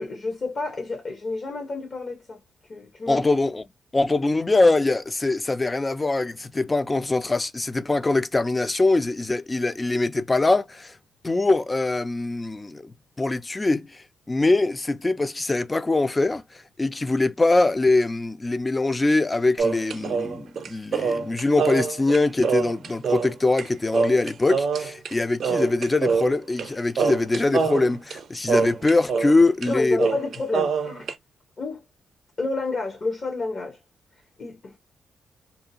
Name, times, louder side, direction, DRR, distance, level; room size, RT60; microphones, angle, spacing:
voice 1, 0.0-2.4 2.7-3.2 29.7-31.1 31.6-31.8 32.4-33.8 34.4-34.7, left 3 dB, 45° left, 1.0 m, -29 dB
voice 2, 3.1-3.6 3.9-11.0 11.2-12.9 13.2-16.4 16.8-30.0, left 2 dB, 20° left, 0.3 m, -23 dB
sound 1, 19.6-23.7 23.9-25.1 25.4-26.7 27.0-29.4 29.6-29.7 30.0-31.1, right 5 dB, 60° right, 0.5 m, -25 dB
2.7 x 2.3 x 2.7 m
cardioid pair, 105°, 0 cm